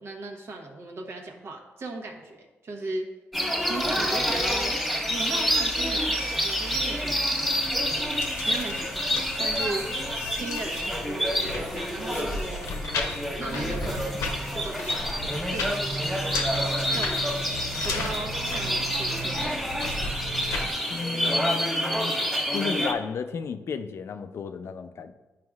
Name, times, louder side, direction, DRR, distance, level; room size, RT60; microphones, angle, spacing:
voice 1, 0.0-3.1 3.7-4.7 5.1-7.4 8.5-12.7 13.4-15.1 15.5-15.9 16.9-17.6 17.8-19.8, right 2 dB, 60° right, 2 dB, 1.0 m, -37 dB
sound 1, 3.3-22.9, equal, ahead, 1.4 m, -28 dB
sound 2, 7.4-20.7, left 1 dB, 90° left, 0.9 m, -35 dB
voice 2, 20.9-22.1 22.5-25.1, left 6 dB, 60° left, 9 dB, 0.4 m, -33 dB
9.5 x 5.1 x 2.4 m, 1.1 s
cardioid pair, 85°, 5 cm